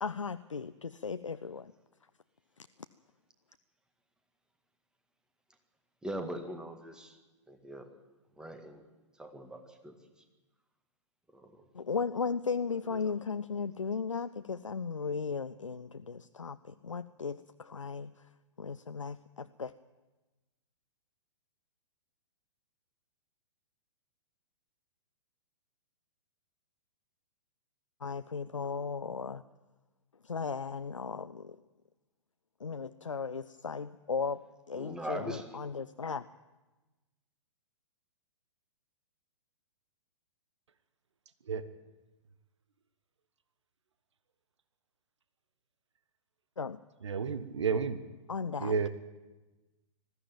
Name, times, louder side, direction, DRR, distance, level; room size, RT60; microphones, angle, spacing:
voice 1, 0.0-1.7 11.7-18.1 18.6-19.7 28.0-29.4 30.2-31.6 32.6-34.4 34.7-36.3 46.6-46.8 48.3-48.9, left 5 dB, 75° left, 12 dB, 0.6 m, -36 dB
voice 2, 6.0-7.2 7.5-7.9 8.4-8.8 9.2-10.2 11.3-11.7 12.9-13.1 34.7-35.6, equal, 5° right, 6 dB, 2.0 m, -41 dB
voice 3, 47.0-48.0 48.6-48.9, right 5 dB, 60° right, 12 dB, 1.3 m, -31 dB
20.0 x 15.0 x 9.1 m, 1.2 s
figure-of-eight pair, 115°, 16 cm